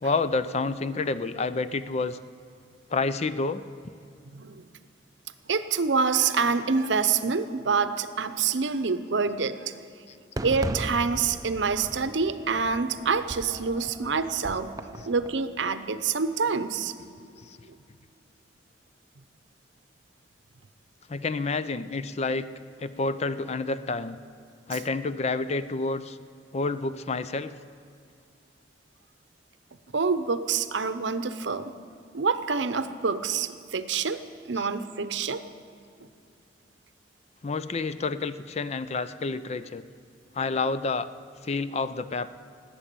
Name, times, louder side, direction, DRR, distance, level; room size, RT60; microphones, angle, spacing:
voice 1, 0.0-2.2 2.9-3.6 14.5-14.6 15.0-15.1 17.4-17.6 21.1-22.5 22.8-24.2 24.7-26.2 26.5-27.5 34.5-34.7 37.4-39.8 40.3-41.1 41.4-42.3, left 3 dB, 35° left, 13 dB, 0.5 m, -29 dB
voice 2, 4.3-4.6 5.5-9.7 10.4-14.8 15.1-16.9 29.9-31.7 32.1-34.2 34.5-35.4, right 5 dB, 70° right, 11 dB, 0.7 m, -26 dB
Fireworks, 10.4-15.4, right 1 dB, 20° right, 0.5 m, -37 dB
19.0 x 8.8 x 6.8 m, 2.5 s
head